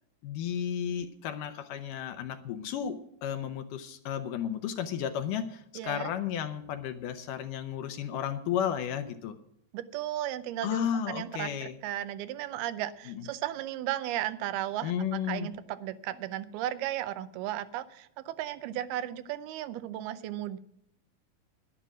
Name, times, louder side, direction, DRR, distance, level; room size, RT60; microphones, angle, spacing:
voice 1, 0.2-9.4 10.6-11.8 13.1-13.3 14.8-15.5, left 9 dB, 75° left, 9 dB, 2.1 m, -33 dB
voice 2, 5.8-6.1 9.7-20.6, right 13 dB, 90° right, 14 dB, 2.7 m, -35 dB
11.5 x 11.0 x 6.1 m, 0.73 s
omnidirectional pair, 4.3 m